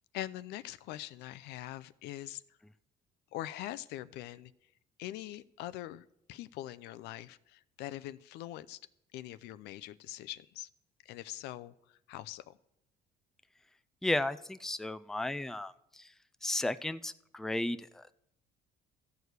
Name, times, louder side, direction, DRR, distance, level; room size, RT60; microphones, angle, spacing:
voice 1, 0.1-2.4 3.3-4.5 5.0-8.8 9.1-10.7 11.0-12.6, left 14 dB, 85° left, 16 dB, 0.5 m, -43 dB
voice 2, 14.0-16.1 16.4-18.1, left 1 dB, 5° left, 12 dB, 0.4 m, -34 dB
14.0 x 4.7 x 8.1 m, 0.79 s
cardioid pair, 110°, 17 cm